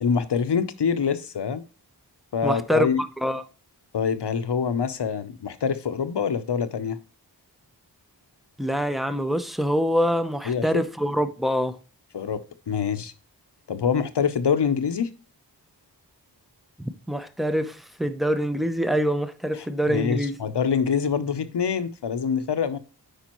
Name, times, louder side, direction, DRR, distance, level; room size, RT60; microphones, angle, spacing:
voice 1, 0.0-1.6 2.3-3.0 3.9-7.0 10.4-10.8 12.1-12.4 12.7-13.1 13.7-15.1 19.9-22.8, left 6 dB, 70° left, 0.8 m, -25 dB
voice 2, 2.4-3.4 8.6-11.8 17.1-20.4, equal, ahead, 0.7 m, -25 dB
8.9 x 5.0 x 3.0 m
wide cardioid pair, 45°, 42 cm